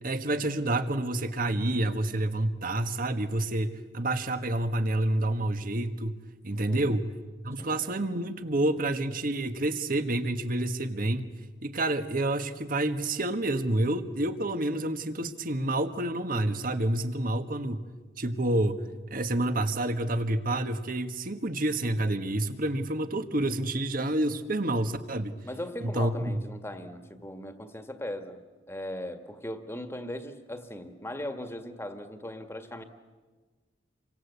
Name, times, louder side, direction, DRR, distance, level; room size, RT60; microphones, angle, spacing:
voice 1, 0.0-6.1 6.4-7.1 7.4-11.3 11.6-17.8 18.2-25.4 25.8-26.4, right 1 dB, 50° right, 9 dB, 1.6 m, -28 dB
voice 2, 6.7-7.0 7.6-7.8 25.4-28.4 28.7-32.8, left 1 dB, 15° left, 7 dB, 1.9 m, -38 dB
29.0 x 24.5 x 8.3 m, 1.3 s
head